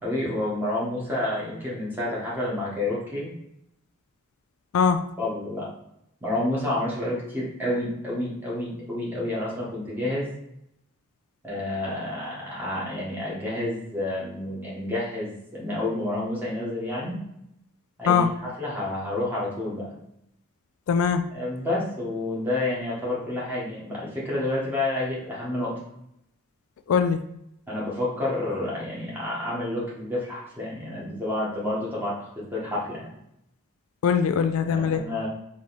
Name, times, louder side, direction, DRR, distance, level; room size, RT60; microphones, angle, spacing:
voice 1, 0.0-3.3 5.2-5.7 6.2-10.3 11.4-17.2 18.0-18.3 18.6-19.9 21.3-25.8 27.7-33.1 34.6-35.3, left 1 dB, 10° right, -7 dB, 1.5 m, -29 dB
voice 2, 20.9-21.2 26.9-27.2 34.0-35.0, left 6 dB, 65° left, 9 dB, 0.3 m, -21 dB
4.0 x 3.1 x 4.0 m, 0.79 s
head